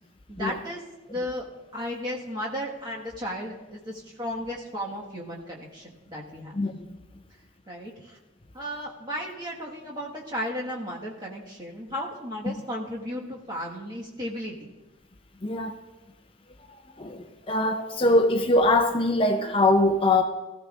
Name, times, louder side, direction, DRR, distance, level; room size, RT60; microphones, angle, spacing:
voice 1, 0.3-0.8 1.1-1.5 1.7-6.5 7.7-8.2 8.5-14.7, equal, 20° right, 1.5 m, -34 dB
voice 2, 6.5-6.9 7.2-7.3 12.4-12.5 15.4-15.8 17.0-20.2, left 2 dB, 25° left, 0.6 m, -23 dB
18.0 x 14.0 x 2.5 m
head